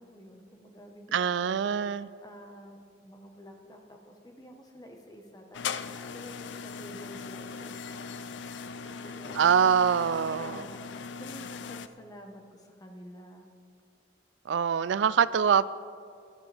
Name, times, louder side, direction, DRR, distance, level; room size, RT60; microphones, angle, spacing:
voice 1, 0.0-8.2 8.8-9.6 10.4-10.8 11.0-13.5, equal, 20° left, 3 dB, 1.2 m, -50 dB
voice 2, 1.1-2.1 9.4-10.6 14.5-15.7, right 7 dB, 85° right, 16 dB, 0.4 m, -24 dB
sound 1, 5.5-11.9, left 5 dB, 85° left, 0.5 m, -39 dB
19.0 x 11.5 x 3.4 m, 2.3 s
head